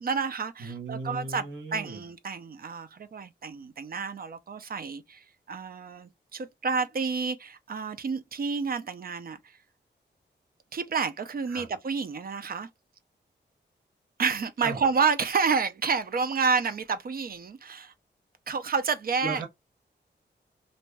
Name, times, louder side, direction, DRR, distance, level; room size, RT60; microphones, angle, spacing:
voice 1, 0.0-1.5 1.7-9.6 10.7-12.7 14.2-17.9 18.5-19.4, right 5 dB, 55° right, 0.5 m, -29 dB
voice 2, 0.6-2.0 11.5-11.7 14.6-14.8 19.2-19.5, right 2 dB, 85° right, 1.0 m, -36 dB
2.6 x 2.2 x 3.2 m
wide cardioid pair, 105°, 19 cm